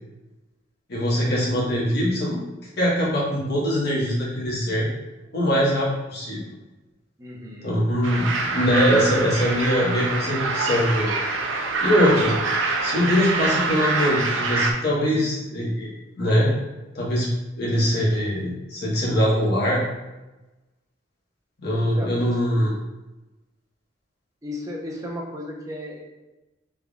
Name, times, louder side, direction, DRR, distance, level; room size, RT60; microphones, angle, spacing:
voice 1, 0.9-2.4 2.8-4.9 5.3-6.4 7.6-11.1 11.8-12.3 12.8-15.9 16.2-16.5 16.9-17.3 17.6-19.8 21.6-22.7, equal, 55° left, -5 dB, 1.4 m, -22 dB
voice 2, 7.2-7.7 21.8-22.1 22.5-22.6 24.4-26.0, left 1 dB, 15° right, -2 dB, 0.8 m, -35 dB
sound 1, 8.0-14.7, right 3 dB, 85° right, 0.6 m, -25 dB
5.8 x 3.7 x 2.4 m, 1.1 s
head